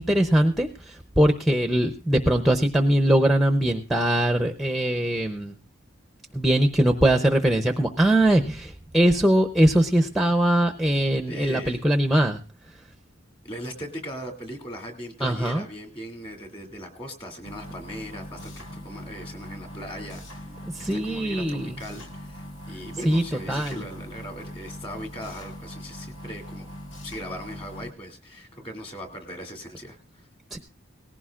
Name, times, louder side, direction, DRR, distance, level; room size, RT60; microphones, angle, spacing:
voice 1, 0.0-5.5 6.3-12.4 15.2-15.6 20.7-21.7 23.0-23.2 23.5-23.8 30.5-30.6, right 1 dB, ahead, 5 dB, 0.6 m, -21 dB
voice 2, 11.3-11.8 13.4-20.4 20.9-26.7 27.0-30.3, equal, 25° left, 4 dB, 2.4 m, -39 dB
sound 1, 17.4-27.9, equal, 65° left, 1.7 m, -41 dB
18.5 x 15.5 x 2.4 m, 0.31 s
head